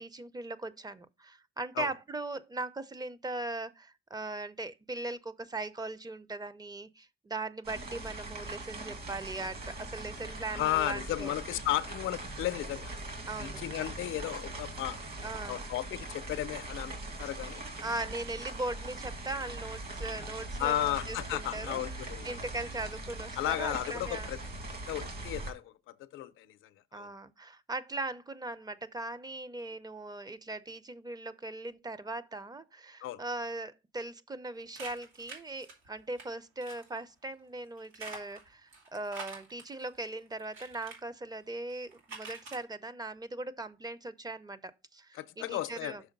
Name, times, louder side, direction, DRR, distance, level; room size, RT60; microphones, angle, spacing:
voice 1, 0.0-11.3 13.3-13.6 15.2-15.6 17.8-24.3 26.9-46.0, right 2 dB, 20° right, 0.6 m, -39 dB
sound 1, 7.6-25.5, right 2 dB, 50° right, 2.1 m, -41 dB
voice 2, 10.5-12.9 13.4-15.0 15.5-17.6 20.6-22.4 23.4-24.4 24.9-27.1 33.0-33.2 45.1-46.0, left 13 dB, 85° left, 0.6 m, -34 dB
sound 2, 34.7-36.2 36.6-37.0 37.8-41.0 41.7-42.6, right 4 dB, 85° right, 2.4 m, -46 dB
6.2 x 4.5 x 5.2 m
cardioid pair, 90°, 20 cm